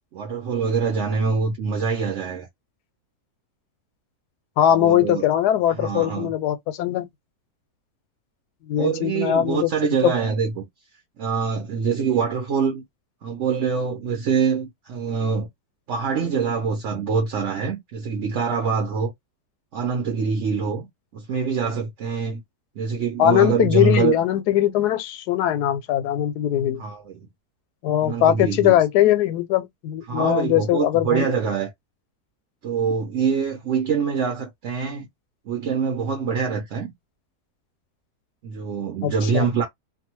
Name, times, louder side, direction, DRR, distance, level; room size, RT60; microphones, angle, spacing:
voice 1, 0.1-2.5 4.7-5.3 5.7-6.3 8.8-10.7 11.2-12.8 13.2-15.5 15.9-19.1 19.7-20.9 21.1-22.4 22.8-24.2 26.8-27.3 28.0-28.8 30.1-31.7 32.6-35.1 35.5-36.9 38.4-39.7, right 6 dB, 60° right, 1.0 m, -24 dB
voice 2, 4.6-7.1 8.7-10.1 23.2-26.8 27.8-31.3 39.0-39.5, left 12 dB, 90° left, 1.1 m, -21 dB
2.7 x 2.2 x 2.9 m
omnidirectional pair, 1.6 m